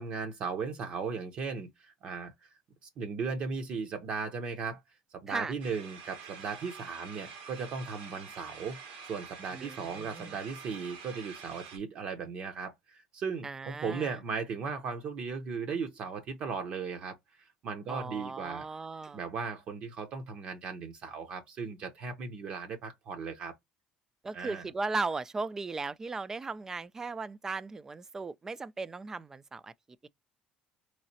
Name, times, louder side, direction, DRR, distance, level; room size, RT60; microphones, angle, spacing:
voice 1, 0.0-2.5 2.8-4.8 5.1-8.8 9.1-18.7 19.1-23.6 24.3-24.6, right 5 dB, 55° right, 0.8 m, -37 dB
sound 1, 5.6-11.8, right 5 dB, 85° right, 1.3 m, -47 dB
voice 2, 9.5-10.3 13.4-14.1 17.9-19.2 24.2-29.7 30.0-30.1, right 3 dB, 20° right, 0.3 m, -37 dB
3.7 x 3.2 x 2.7 m
cardioid pair, 105°, 2 cm